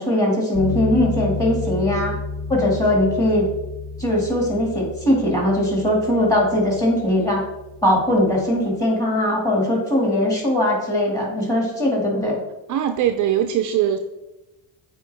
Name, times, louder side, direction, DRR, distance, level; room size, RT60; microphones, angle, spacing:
voice 1, 0.0-2.2 2.5-3.4 4.0-7.4 7.8-12.4, left 1 dB, 10° left, -3 dB, 2.3 m, -20 dB
sound 1, 0.5-8.7, left 3 dB, 40° left, 1.5 m, -32 dB
voice 2, 12.7-14.0, right 10 dB, 50° right, 7 dB, 0.5 m, -21 dB
8.5 x 4.3 x 3.5 m, 0.99 s
cardioid pair, 125°, 41 cm